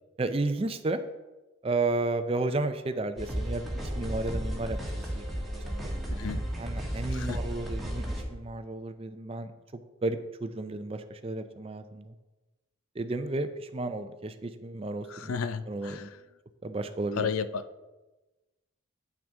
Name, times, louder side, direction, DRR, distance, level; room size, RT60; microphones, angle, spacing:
voice 1, 0.2-1.0 1.6-3.7 3.9-6.2 6.6-12.1 13.0-15.3 15.7-16.1 16.6-17.3, right 2 dB, 25° right, 9 dB, 0.4 m, -33 dB
sound 1, 3.2-8.2, equal, ahead, 1.3 m, -33 dB
voice 2, 15.1-16.2 17.1-17.6, left 6 dB, 90° left, 13 dB, 0.4 m, -33 dB
8.6 x 6.0 x 3.6 m, 1.1 s
head